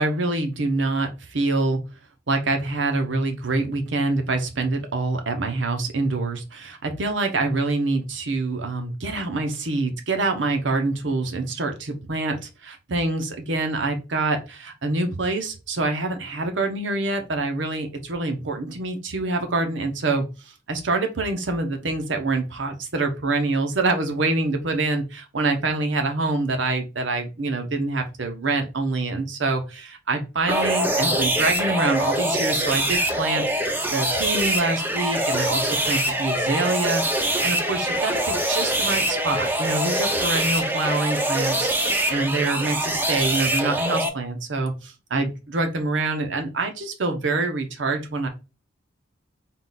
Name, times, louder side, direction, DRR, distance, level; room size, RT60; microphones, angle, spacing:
voice 1, 0.0-1.8 2.3-20.2 20.7-48.3, right 3 dB, 80° right, 5 dB, 0.8 m, -26 dB
sound 1, 30.5-44.1, right 1 dB, 10° right, 0.5 m, -24 dB
3.8 x 2.4 x 3.9 m, 0.29 s
head